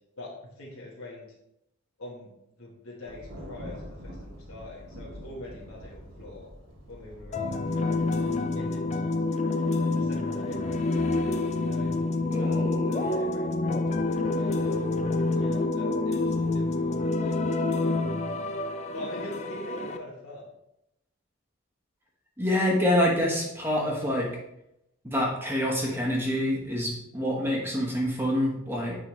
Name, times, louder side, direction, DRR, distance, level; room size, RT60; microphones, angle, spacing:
voice 1, 0.6-1.3 2.0-2.3 2.6-6.5 6.9-8.1 8.5-11.9 12.4-14.8 15.4-17.4 18.0-18.3 18.9-20.5, left 2 dB, 85° left, -4 dB, 1.3 m, -44 dB
Thunder, 3.1-8.4, equal, 65° right, 1.3 m, -45 dB
sound 1, 7.3-20.0, left 2 dB, 30° left, 0.4 m, -27 dB
voice 2, 12.3-13.1 22.4-24.3 25.0-29.0, left 1 dB, 10° right, -2 dB, 1.1 m, -27 dB
9.6 x 3.8 x 3.1 m, 0.83 s
head